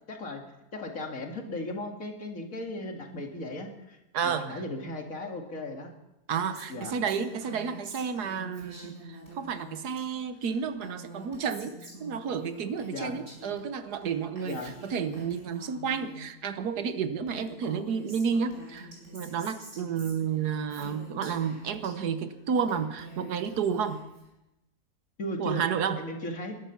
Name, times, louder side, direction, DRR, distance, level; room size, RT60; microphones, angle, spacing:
voice 1, 0.1-0.4 0.7-4.0 4.2-5.9 6.7-7.0 12.9-13.2 14.4-14.8 20.3-20.4 25.2-25.6 26.0-26.6, left 1 dB, 55° left, 3 dB, 2.5 m, -36 dB
voice 2, 4.1-4.6 6.3-24.0 25.4-26.0, right 6 dB, 75° right, 11 dB, 1.5 m, -31 dB
Female speech woman speaking, 6.4-10.0 10.3-13.6 13.9-16.3 16.9-17.0 17.2-21.9 22.3-24.3, right 1 dB, 45° right, 5.4 m, -46 dB
20.5 x 12.0 x 5.8 m, 0.93 s
omnidirectional pair, 1.7 m